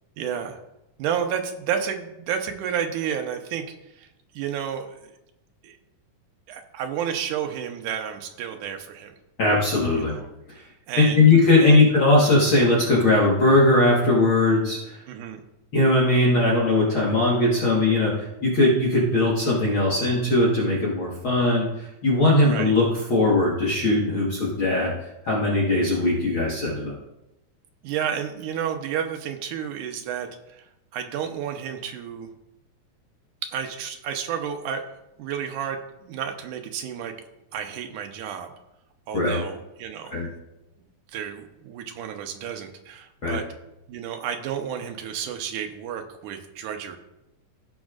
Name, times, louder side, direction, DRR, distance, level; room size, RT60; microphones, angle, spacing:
voice 1, 0.2-0.6 1.0-3.6 4.0-4.1 4.3-5.0 5.6-5.8 6.5-9.1 9.9-10.2 10.9-11.3 11.6-11.8 15.1-15.4 22.5-22.7 27.8-30.6 30.9-32.3 33.5-34.8 35.2-37.1 37.5-38.5 39.1-40.2 41.1-43.4 43.9-47.0, right 8 dB, 85° right, 5 dB, 2.3 m, -31 dB
voice 2, 9.4-10.1 10.5-10.6 11.0-15.0 15.7-24.9 25.2-27.0 39.1-39.4 40.1-40.3 43.2-43.4, left 2 dB, 50° left, -5 dB, 1.9 m, -20 dB
16.5 x 6.3 x 2.5 m, 0.90 s
omnidirectional pair, 3.6 m